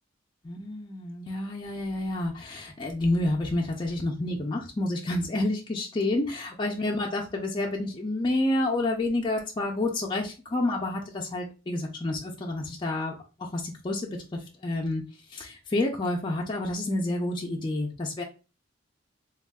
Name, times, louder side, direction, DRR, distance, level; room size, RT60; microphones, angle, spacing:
voice 1, 0.4-15.0 15.3-18.2, left 2 dB, 25° left, -1 dB, 0.4 m, -29 dB
3.4 x 2.3 x 2.2 m, 0.31 s
head